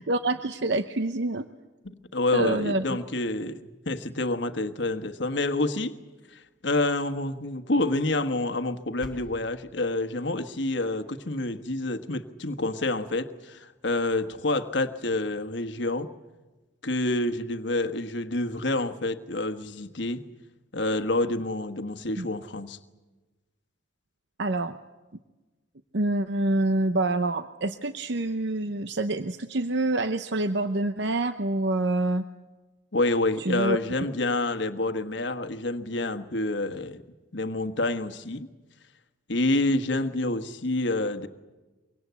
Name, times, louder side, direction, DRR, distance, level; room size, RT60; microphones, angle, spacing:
voice 1, 0.0-1.4 2.3-2.9 22.2-22.3 24.4-24.8 25.9-32.2 33.4-33.8, right 2 dB, 55° right, 0.8 m, -26 dB
voice 2, 1.8-5.9 6.3-16.1 16.8-20.2 20.7-22.8 32.9-37.0 37.3-38.5 39.3-41.3, left 2 dB, 60° left, 1.4 m, -28 dB
sound 1, 8.6-9.6, equal, ahead, 6.3 m, -46 dB
24.5 x 23.5 x 8.3 m
head